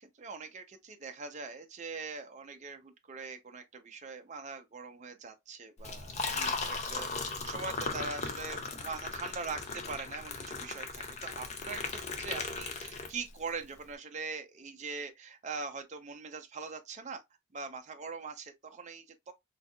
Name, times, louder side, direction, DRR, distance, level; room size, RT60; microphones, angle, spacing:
voice 1, 0.0-17.2 17.5-19.3, right 4 dB, 35° right, 0.5 m, -42 dB
Liquid, 5.8-13.5, left 4 dB, 30° left, 0.5 m, -37 dB
3.9 x 2.7 x 2.2 m
head